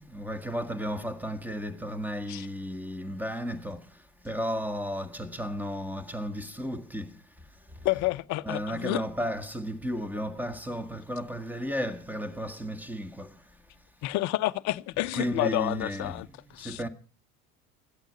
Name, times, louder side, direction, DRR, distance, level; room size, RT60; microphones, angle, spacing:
voice 1, 0.0-3.9 4.2-7.2 8.4-13.4 15.1-16.3 16.6-16.9, equal, 5° right, 1.8 m, -34 dB
voice 2, 7.8-9.0 14.0-16.3 16.5-16.8, left 19 dB, 40° left, 0.8 m, -29 dB
16.5 x 12.5 x 5.5 m
figure-of-eight pair, 75°, 43 cm